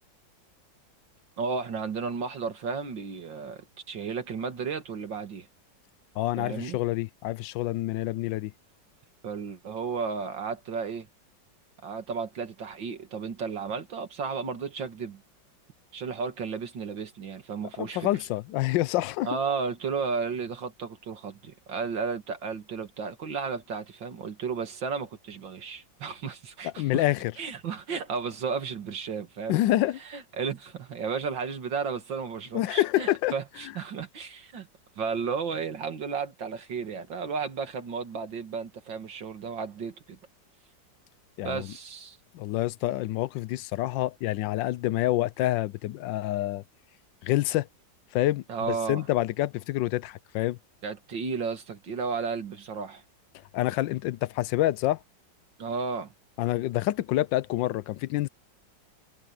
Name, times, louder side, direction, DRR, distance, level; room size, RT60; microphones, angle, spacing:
voice 1, 1.4-5.5 6.4-6.8 9.2-11.1 11.8-15.2 15.9-18.2 19.2-27.0 27.4-29.6 30.0-34.7 35.0-40.2 41.4-42.2 48.5-49.1 50.8-53.0 55.6-56.1, right 5 dB, 85° right, 2.7 m, -33 dB
voice 2, 6.2-8.5 17.8-19.3 26.6-27.3 29.5-30.0 32.5-33.3 41.4-41.7 42.3-46.6 47.2-47.7 48.1-50.6 53.5-55.0 56.4-58.3, left 15 dB, 85° left, 1.3 m, -27 dB
omnidirectional pair, 2.0 m